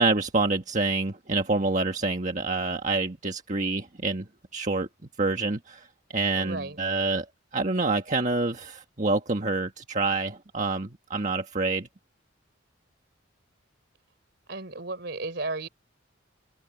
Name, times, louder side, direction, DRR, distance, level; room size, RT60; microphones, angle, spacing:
voice 1, 0.0-4.2 4.5-4.9 5.2-5.9 6.1-7.2 7.5-11.9, right 3 dB, 40° right, 1.5 m, -27 dB
voice 2, 6.3-6.8 14.5-15.7, right 2 dB, 60° right, 3.9 m, -34 dB
open air
head